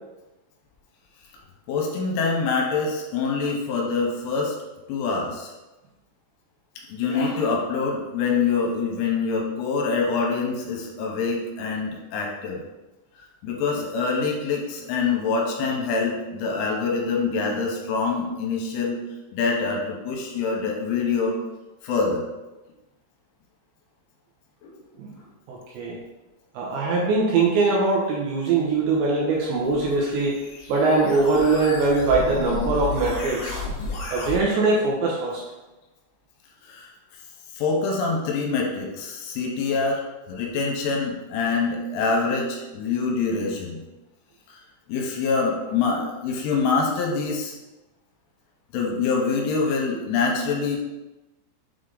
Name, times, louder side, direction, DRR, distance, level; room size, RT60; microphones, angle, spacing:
voice 1, 1.7-4.5 4.9-5.5 6.9-12.6 13.2-19.0 19.3-21.4 21.8-22.2 24.6-24.7 36.6-36.9 37.6-40.0 40.3-43.8 44.5-44.6 44.9-47.5 48.7-50.8, left 4 dB, 80° left, 0 dB, 3.2 m, -25 dB
voice 2, 25.5-26.0 26.5-30.4 30.7-33.6 34.1-35.4, right 3 dB, 75° right, -3 dB, 2.8 m, -22 dB
sound 1, 29.4-34.4, left 3 dB, 65° left, 2.6 m, -33 dB
7.6 x 3.3 x 3.8 m, 1.1 s
omnidirectional pair, 5.9 m